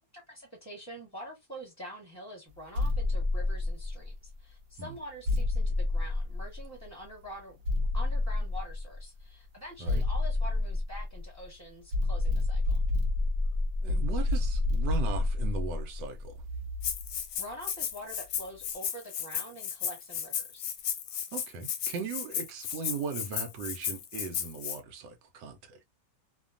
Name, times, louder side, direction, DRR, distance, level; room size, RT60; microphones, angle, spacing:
voice 1, 0.1-7.6 7.9-12.7 17.4-20.7, equal, 10° right, 0.9 m, -45 dB
sound 1, 2.7-4.2 5.3-6.9 7.6-9.0 9.9-11.5 11.9-17.2, left 2 dB, 70° right, 1.1 m, -29 dB
voice 2, 13.8-16.4 21.3-25.8, right 5 dB, 85° right, 1.2 m, -38 dB
Rattle (instrument), 16.8-24.8, left 9 dB, 75° left, 1.1 m, -34 dB
2.9 x 2.2 x 2.4 m
omnidirectional pair, 1.9 m